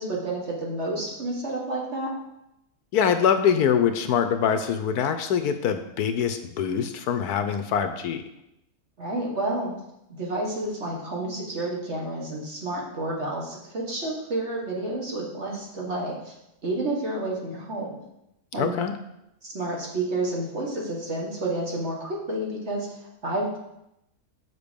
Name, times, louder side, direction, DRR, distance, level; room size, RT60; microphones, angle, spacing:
voice 1, 0.0-2.1 9.0-9.7 10.1-16.3 16.6-18.0 18.5-18.8 19.4-23.6, right 2 dB, 45° right, -2 dB, 1.9 m, -30 dB
voice 2, 2.9-8.2 18.6-18.9, left 7 dB, 75° left, 9 dB, 1.1 m, -24 dB
6.7 x 6.6 x 5.2 m, 0.84 s
omnidirectional pair, 1.7 m